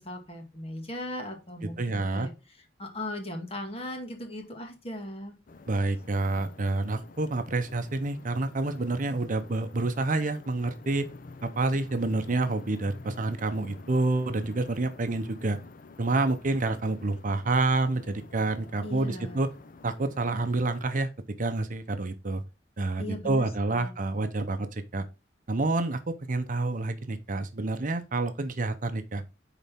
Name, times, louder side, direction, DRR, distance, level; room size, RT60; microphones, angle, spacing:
voice 1, 0.0-2.3 2.8-5.4 18.8-19.4 23.0-23.9, left 1 dB, 35° left, 1.8 m, -38 dB
voice 2, 1.8-2.3 5.7-11.1 11.4-15.6 16.0-19.5 19.8-21.1 21.4-22.4 22.8-25.1 25.5-29.2, right 2 dB, 45° right, 0.7 m, -28 dB
sound 1, 5.5-21.1, left 3 dB, 50° left, 0.6 m, -49 dB
9.7 x 4.1 x 3.6 m
head